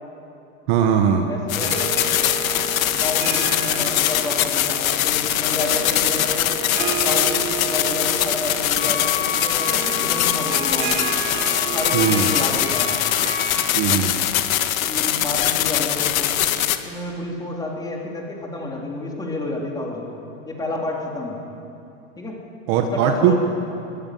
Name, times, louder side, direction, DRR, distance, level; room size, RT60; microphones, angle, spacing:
voice 1, 0.7-1.3 11.9-12.3 13.7-14.1 22.7-23.3, right 8 dB, 35° right, 4 dB, 1.5 m, -19 dB
voice 2, 1.3-1.9 2.9-6.5 7.0-11.0 11.7-12.9 14.9-16.3 16.9-20.2 20.4-21.4 22.2-22.4 22.8-23.3, left 2 dB, 10° left, -1 dB, 3.6 m, -30 dB
sound 1, 1.5-16.8, left 12 dB, 85° left, 1.8 m, -22 dB
Harp, 1.5-15.3, right 10 dB, 70° right, 1.8 m, -33 dB
Wind instrument woodwind instrument, 8.7-13.7, left 6 dB, 25° left, 4.7 m, -31 dB
23.5 x 22.0 x 9.4 m, 2.7 s
supercardioid pair, 170°, 40 cm